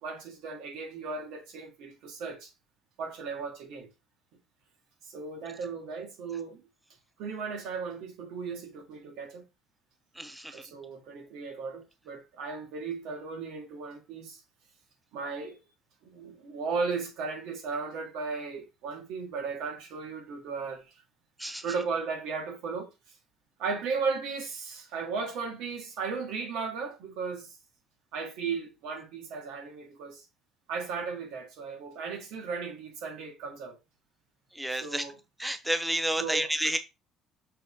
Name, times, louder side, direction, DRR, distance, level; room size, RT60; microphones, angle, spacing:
voice 1, 0.0-2.5 3.0-3.9 5.0-6.6 7.2-9.4 10.5-14.4 15.1-15.6 16.0-20.8 21.6-22.9 23.6-27.5 28.1-30.2 30.7-33.8 34.7-35.2 36.2-36.5, right 5 dB, 75° right, 3.0 m, -36 dB
voice 2, 10.2-10.7 21.4-21.6 34.5-35.0 35.4-36.8, right 1 dB, 5° right, 0.6 m, -30 dB
6.5 x 4.0 x 4.2 m
cardioid pair, 145°, 0 cm